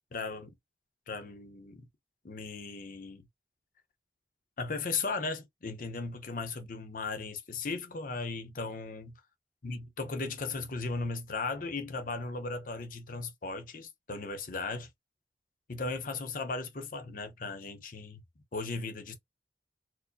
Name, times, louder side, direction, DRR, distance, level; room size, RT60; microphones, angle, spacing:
voice 1, 0.1-0.6 1.1-1.9 2.2-3.2 4.6-9.1 9.6-14.9 15.7-18.2 18.5-19.2, left 3 dB, 50° left, 0.7 m, -37 dB
4.4 x 2.1 x 2.5 m
head